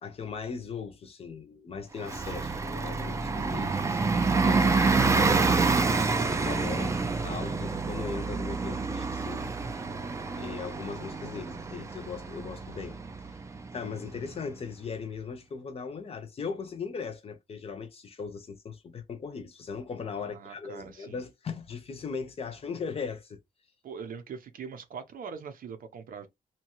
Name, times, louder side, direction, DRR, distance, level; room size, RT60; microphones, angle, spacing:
voice 1, 0.0-4.1 4.4-5.7 6.3-9.5 10.4-13.0 13.7-23.4, left 5 dB, 40° left, 0.6 m, -38 dB
Bus, 2.0-14.3, right 4 dB, 20° right, 0.4 m, -28 dB
voice 2, 20.1-21.2 23.8-26.3, right 6 dB, 70° right, 0.7 m, -42 dB
2.8 x 2.3 x 2.9 m
wide cardioid pair, 145°, 15 cm